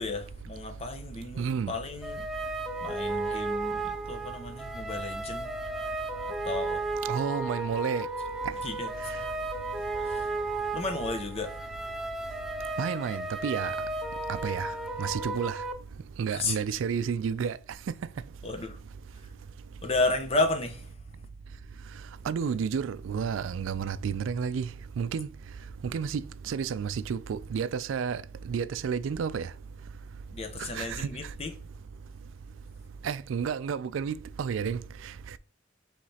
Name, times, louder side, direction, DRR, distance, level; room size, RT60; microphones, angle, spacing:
voice 1, 0.0-2.3 2.8-5.5 6.3-6.9 8.6-9.1 10.0-10.5 10.7-11.6 16.3-16.6 18.4-18.8 19.8-20.9 30.3-31.5, left 2 dB, 30° left, 0.7 m, -33 dB
voice 2, 1.4-1.7 7.1-8.1 12.8-13.8 14.3-14.7 15.0-15.6 16.2-17.6 22.3-24.7 25.0-25.3 25.9-29.5 30.6-31.1 33.0-34.8, right 6 dB, 80° right, 0.3 m, -31 dB
sound 1, 2.0-15.7, right 2 dB, ahead, 0.3 m, -34 dB
4.9 x 3.2 x 2.8 m
head